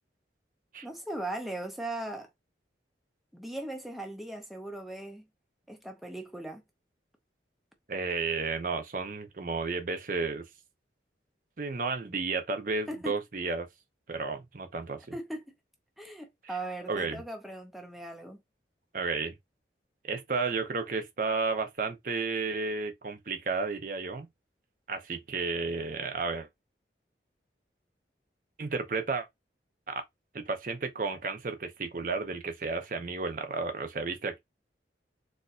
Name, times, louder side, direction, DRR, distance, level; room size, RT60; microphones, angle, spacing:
voice 1, 0.8-2.3 3.3-5.3 5.7-6.6 12.9-13.1 15.1-15.4 16.0-18.4, right 1 dB, ahead, 0.6 m, -38 dB
voice 2, 7.9-10.4 11.6-13.7 14.1-15.0 16.9-17.2 18.9-19.4 20.0-24.3 24.9-26.5 28.6-29.3 29.9-30.0 30.3-34.4, right 4 dB, 45° right, 0.6 m, -32 dB
4.1 x 2.5 x 2.4 m
head